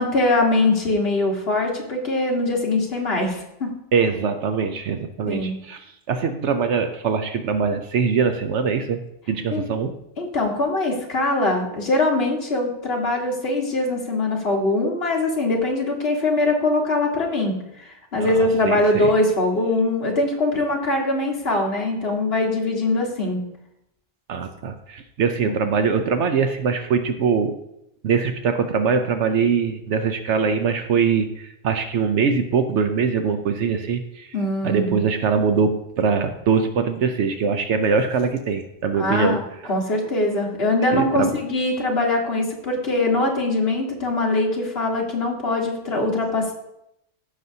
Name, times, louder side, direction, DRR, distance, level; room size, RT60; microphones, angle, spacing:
voice 1, 0.0-3.7 5.3-5.6 9.5-9.6 10.2-23.4 25.4-25.6 34.3-35.0 38.9-39.4 39.7-46.5, left 2 dB, 55° left, -1 dB, 1.8 m, -22 dB
voice 2, 3.9-5.8 6.1-9.0 9.3-9.9 18.2-18.3 18.6-19.1 24.3-27.6 28.0-34.3 34.6-39.7 40.9-41.3, right 5 dB, 75° right, 7 dB, 1.0 m, -22 dB
15.0 x 6.1 x 2.7 m, 0.81 s
omnidirectional pair, 1.2 m